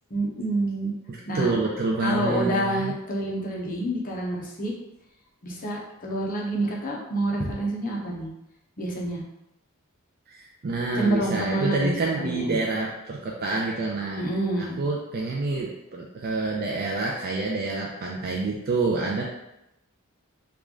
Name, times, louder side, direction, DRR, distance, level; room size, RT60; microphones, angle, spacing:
voice 1, 0.1-0.9 1.3-1.5 2.0-4.7 5.4-8.3 8.8-9.2 11.0-12.6 14.2-14.8, right 1 dB, 40° left, -2 dB, 0.8 m, -28 dB
voice 2, 1.1-2.9 10.3-14.2 14.8-19.2, right 3 dB, 45° right, -2 dB, 0.4 m, -27 dB
3.2 x 2.4 x 3.7 m, 0.88 s
head